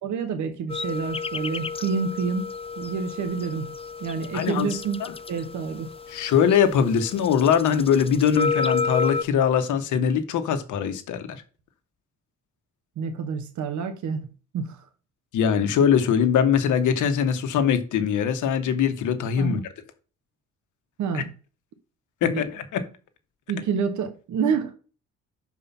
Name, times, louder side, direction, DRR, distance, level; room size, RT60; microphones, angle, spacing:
voice 1, 0.0-2.5 2.8-3.7 4.0-5.0 5.3-5.9 13.0-14.3 14.5-14.8 19.4-19.6 21.0-21.3 22.2-22.4 23.5-24.7, right 6 dB, 70° right, 1.0 m, -28 dB
sound 1, 0.7-9.2, left 5 dB, 20° left, 0.4 m, -31 dB
voice 2, 4.3-4.7 5.0-5.1 6.1-11.4 15.3-19.6 21.1-21.2 22.2-22.8, left 7 dB, 80° left, 1.2 m, -22 dB
5.7 x 4.8 x 5.4 m
cardioid pair, 90°, 30 cm